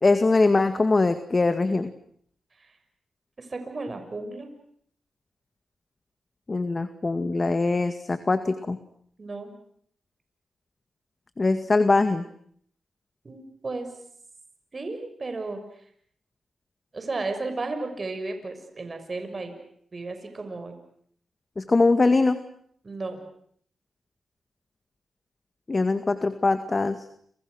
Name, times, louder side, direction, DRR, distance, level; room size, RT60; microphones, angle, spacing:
voice 1, 0.0-1.9 6.5-8.8 11.4-12.2 21.6-22.4 25.7-27.0, left 3 dB, 40° left, 10 dB, 2.0 m, -22 dB
voice 2, 3.4-4.5 9.2-9.5 13.2-13.9 14.7-15.6 16.9-19.5 19.9-20.8 22.8-23.2, right 3 dB, 45° right, 6 dB, 6.3 m, -34 dB
29.5 x 27.5 x 6.5 m, 0.64 s
supercardioid pair, 50°, 0 cm